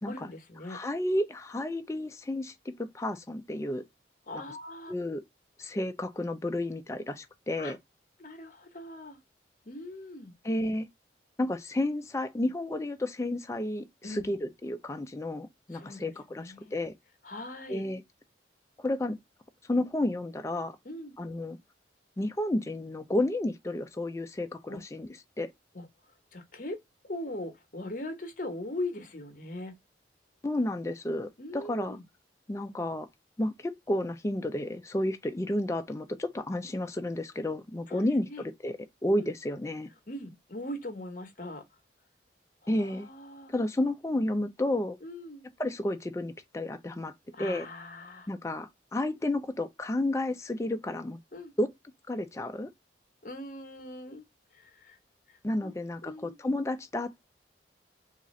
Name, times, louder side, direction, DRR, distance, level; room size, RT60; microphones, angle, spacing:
voice 1, 0.0-0.8 4.3-4.9 7.6-7.7 8.2-9.2 9.6-10.3 14.0-14.3 15.7-16.8 17.2-17.8 20.8-21.2 24.7-24.8 25.7-25.9 26.3-26.8 27.0-29.7 31.4-32.0 37.9-38.5 39.2-39.3 40.1-41.6 42.8-43.5 45.0-45.4 47.3-48.3 51.3-51.5 53.2-54.2 54.5-55.0 55.3-55.7 56.0-56.4, left 1 dB, 45° left, 0.8 m, -40 dB
voice 2, 0.7-3.8 4.9-5.2 5.6-7.8 10.4-10.9 11.4-16.9 17.7-18.0 18.8-19.2 19.6-20.8 21.2-21.6 22.2-25.1 25.4-25.5 30.4-32.0 32.5-33.1 33.4-39.9 42.7-43.1 43.5-45.0 45.6-47.1 47.4-47.7 48.3-51.2 51.6-51.7 52.1-52.7 55.4-57.2, left 1 dB, 15° left, 0.4 m, -31 dB
3.7 x 2.4 x 3.0 m
head